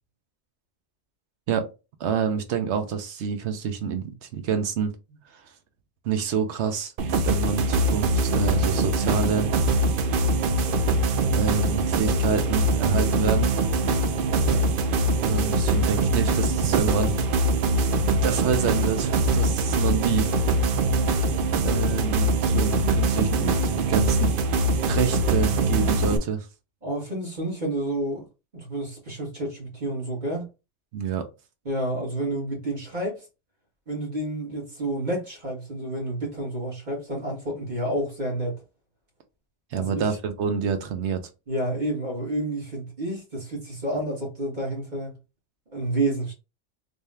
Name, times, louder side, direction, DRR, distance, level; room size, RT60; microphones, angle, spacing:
voice 1, 2.0-4.9 5.3-5.4 6.0-6.9 7.2-9.5 11.3-13.5 15.2-17.2 18.2-20.3 21.6-24.4 24.9-26.5 30.9-31.3 39.7-41.2, right 7 dB, 80° right, 1.0 m, -27 dB
sound 1, 7.0-26.2, right 2 dB, 60° right, 0.6 m, -23 dB
voice 2, 26.8-28.3 28.5-30.5 31.7-33.2 33.9-38.6 39.8-40.0 41.5-45.1 45.7-46.3, right 1 dB, 45° right, 1.8 m, -29 dB
3.4 x 2.7 x 3.3 m
omnidirectional pair, 1.1 m